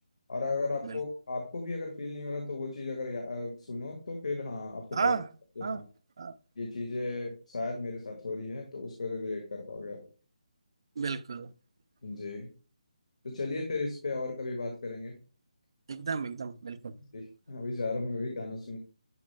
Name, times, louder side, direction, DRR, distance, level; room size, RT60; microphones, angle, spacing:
voice 1, 0.3-5.2 5.6-5.8 6.6-10.1 12.0-12.5 13.2-15.2 17.0-18.8, left 3 dB, 60° left, 1.8 m, -35 dB
voice 2, 4.9-5.3 5.6-5.8 6.2-6.3 11.0-11.5 15.9-16.9, right 5 dB, 40° right, 0.5 m, -32 dB
10.5 x 5.0 x 2.2 m
hypercardioid pair, 175°, 4 cm